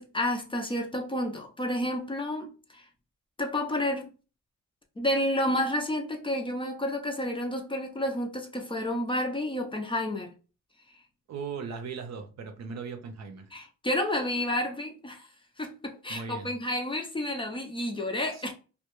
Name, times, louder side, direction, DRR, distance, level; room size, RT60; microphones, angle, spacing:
voice 1, 0.0-2.9 3.4-4.1 5.0-10.3 13.5-15.3 15.6-18.5, left 1 dB, 15° left, 0.5 m, -30 dB
voice 2, 11.3-13.5 16.1-16.5 18.3-18.5, right 5 dB, 60° right, 0.6 m, -38 dB
2.2 x 2.1 x 3.0 m
cardioid pair, 90°, 30 cm